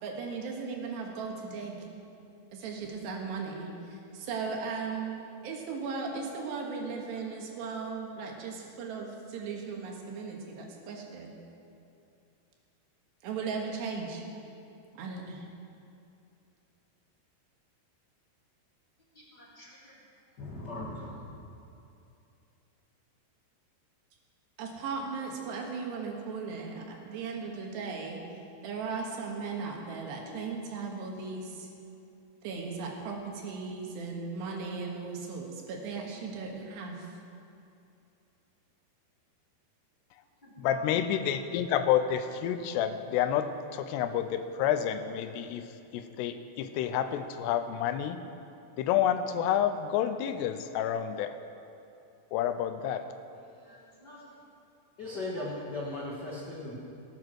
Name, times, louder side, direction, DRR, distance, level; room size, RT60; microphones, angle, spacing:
voice 1, 0.0-1.8 2.5-5.1 5.4-11.3 13.2-14.2 15.0-15.5 24.6-28.2 28.6-31.7 32.4-37.1, right 4 dB, 80° right, 0 dB, 3.7 m, -37 dB
voice 2, 19.1-19.9 40.4-40.9 53.3-54.4, equal, 10° left, -7 dB, 2.9 m, -52 dB
voice 3, 20.4-21.2 55.0-56.7, left 2 dB, 60° left, -5 dB, 1.1 m, -37 dB
voice 4, 40.6-45.7 45.9-48.2 48.8-51.4 52.3-53.1, left 9 dB, 85° left, 10 dB, 2.7 m, -29 dB
18.0 x 9.4 x 6.2 m, 2.7 s
omnidirectional pair, 4.8 m